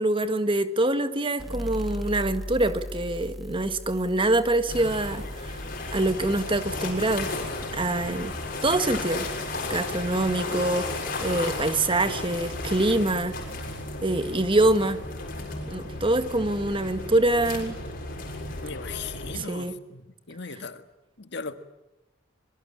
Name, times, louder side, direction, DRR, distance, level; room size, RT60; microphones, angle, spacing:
voice 1, 0.0-5.6 5.9-7.3 7.7-8.3 8.6-9.3 9.7-13.4 14.0-15.0 15.7-17.8 19.3-19.7, right 2 dB, 25° right, 10 dB, 1.8 m, -25 dB
sound 1, 1.4-8.7, equal, ahead, 1.8 m, -39 dB
sound 2, 4.7-19.4, left 2 dB, 50° left, 7.0 m, -34 dB
voice 2, 18.6-20.8 21.2-21.5, left 5 dB, 65° left, 9 dB, 1.8 m, -38 dB
26.0 x 22.5 x 8.7 m, 0.98 s
head